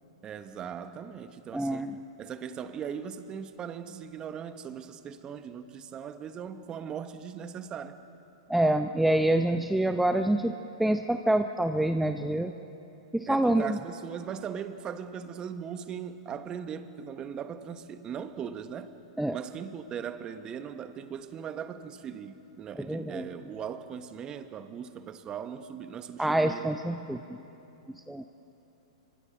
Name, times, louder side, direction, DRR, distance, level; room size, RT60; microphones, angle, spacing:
voice 1, 0.2-1.9 2.2-8.0 13.3-18.9 19.3-26.6, right 8 dB, 25° right, 10 dB, 1.2 m, -39 dB
voice 2, 1.5-2.0 8.5-10.5 10.8-12.5 13.1-13.8 19.2-19.4 22.8-23.3 26.2-27.2 28.1-28.2, right 1 dB, 5° right, 7 dB, 0.6 m, -26 dB
25.5 x 24.0 x 6.5 m, 3.0 s
hypercardioid pair, 120°, 3 cm